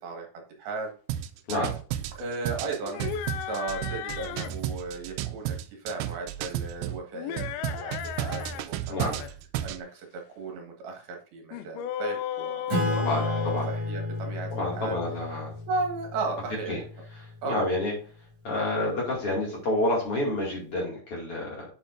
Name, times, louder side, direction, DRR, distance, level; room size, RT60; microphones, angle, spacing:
voice 1, 0.6-0.9 2.1-7.4 7.8-9.1 9.6-14.5 14.8-15.0 15.7-16.8 17.4-17.7, right 3 dB, 75° right, 2 dB, 3.5 m, -35 dB
sound 1, 1.1-7.0 7.4-9.8, right 11 dB, 90° right, 2.6 m, -33 dB
sound 2, 2.8-4.6 7.1-8.6 9.0-9.3 11.5-14.4, left 10 dB, 80° left, 2.4 m, -35 dB
Acoustic guitar / Strum, 12.7-17.7, left 1 dB, 45° right, 2.8 m, -32 dB
voice 2, 13.0-13.7 14.5-15.5 16.7-16.8 17.4-17.9 18.4-21.6, left 1 dB, 40° left, -3 dB, 2.7 m, -29 dB
7.8 x 7.4 x 2.5 m, 0.38 s
omnidirectional pair, 4.5 m